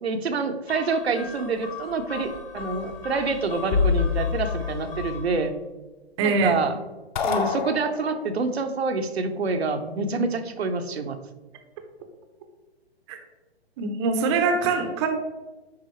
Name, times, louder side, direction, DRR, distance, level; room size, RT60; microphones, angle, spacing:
voice 1, 0.0-5.6 6.2-6.8 7.2-11.2, right 4 dB, 75° right, 6 dB, 0.8 m, -27 dB
sound 1, 0.7-5.4, left 5 dB, 65° left, 2.2 m, -29 dB
voice 2, 6.2-6.6 13.1-13.2 13.8-15.1, right 4 dB, 25° right, 4 dB, 0.7 m, -23 dB
sound 2, 7.2-8.5, left 6 dB, 45° left, 0.6 m, -28 dB
9.6 x 3.7 x 3.1 m, 1.1 s
figure-of-eight pair, 130°, 32 cm